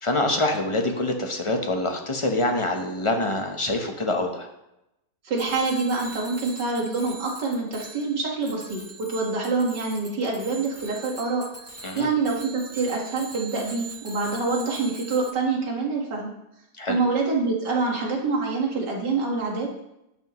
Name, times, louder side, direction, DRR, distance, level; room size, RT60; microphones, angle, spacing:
voice 1, 0.0-4.5 11.8-12.1 16.8-17.0, left 2 dB, 25° left, 3 dB, 0.9 m, -25 dB
voice 2, 5.2-11.4 12.0-16.3 16.9-19.7, right 3 dB, 90° right, 0 dB, 2.4 m, -26 dB
Bicycle bell, 5.3-15.3, right 3 dB, 15° right, 0.5 m, -42 dB
11.0 x 8.6 x 3.1 m, 0.87 s
omnidirectional pair, 1.8 m